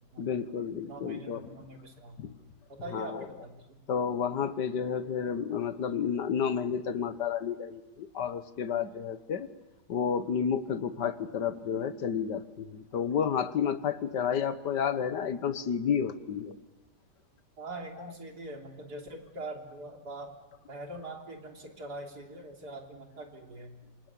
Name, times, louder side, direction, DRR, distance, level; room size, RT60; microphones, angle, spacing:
voice 1, 0.2-1.6 2.2-2.3 2.9-3.3 3.9-9.5 9.9-16.6, left 7 dB, 90° left, 12 dB, 1.9 m, -31 dB
voice 2, 0.8-2.2 2.7-3.8 17.6-20.4 20.7-23.8, right 2 dB, 70° right, 2 dB, 3.9 m, -43 dB
27.5 x 25.5 x 8.5 m, 1.0 s
omnidirectional pair, 1.8 m